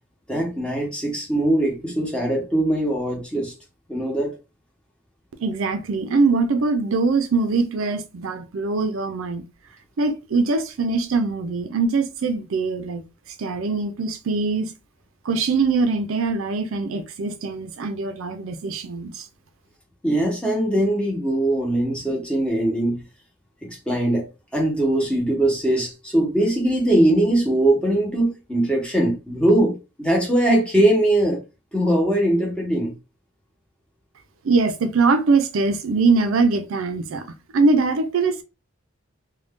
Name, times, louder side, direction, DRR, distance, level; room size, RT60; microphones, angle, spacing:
voice 1, 0.3-3.5 3.9-4.3 20.0-23.0 23.6-31.4 31.7-33.0, right 1 dB, 5° left, 0.8 m, -21 dB
voice 2, 5.4-9.4 10.0-13.0 13.4-14.7 15.2-19.2 34.4-37.2 37.5-38.4, right 4 dB, 75° right, 0.4 m, -22 dB
2.5 x 2.2 x 3.5 m
head